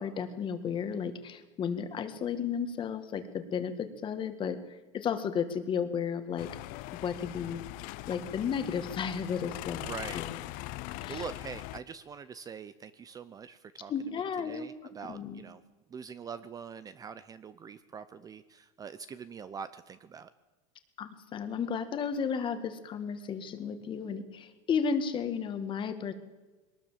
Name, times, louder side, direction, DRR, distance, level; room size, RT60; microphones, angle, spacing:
voice 1, 0.0-6.5 7.0-7.6 8.1-9.9 10.1-10.3 11.0-11.2 13.9-14.7 15.1-15.4 21.0-26.1, left 7 dB, 30° left, 9 dB, 1.9 m, -33 dB
sound 1, 6.4-11.8, left 18 dB, 55° left, 0.7 m, -41 dB
voice 2, 9.9-10.5 10.9-13.9 14.4-15.6 15.9-20.3, right 6 dB, 20° right, 14 dB, 0.7 m, -44 dB
21.5 x 19.5 x 7.4 m, 1.2 s
supercardioid pair, 145°, 17 cm